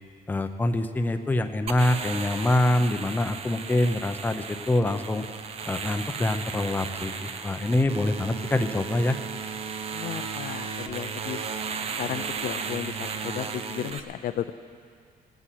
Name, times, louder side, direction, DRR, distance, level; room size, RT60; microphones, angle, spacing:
voice 1, 0.3-5.2 5.7-9.2, left 1 dB, 10° left, 7 dB, 0.7 m, -25 dB
sound 1, 1.7-14.0, right 6 dB, 40° right, 0.8 m, -35 dB
voice 2, 9.9-11.4 12.0-14.5, left 10 dB, 65° left, 10 dB, 0.6 m, -34 dB
17.5 x 8.4 x 9.1 m, 2.2 s
cardioid pair, 155°, 16 cm